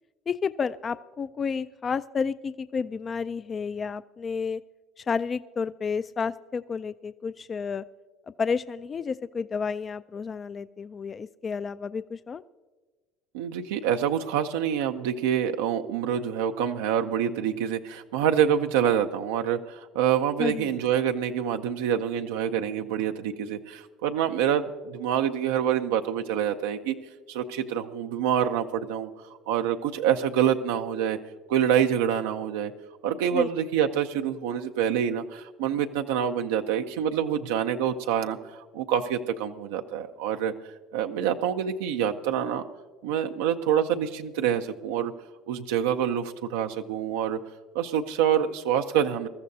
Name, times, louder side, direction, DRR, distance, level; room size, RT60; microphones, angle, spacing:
voice 1, 0.3-4.6 5.0-7.8 8.4-12.4 20.4-20.8 33.3-33.5, left 5 dB, 35° left, 14 dB, 0.3 m, -31 dB
voice 2, 13.3-26.9 27.3-29.1 29.5-31.2 31.5-32.7 33.0-40.5 40.9-42.6 43.0-45.1 45.5-47.4 47.7-49.3, right 9 dB, 90° right, 5 dB, 0.5 m, -26 dB
21.5 x 13.5 x 2.7 m, 1.3 s
supercardioid pair, 90°, 0 cm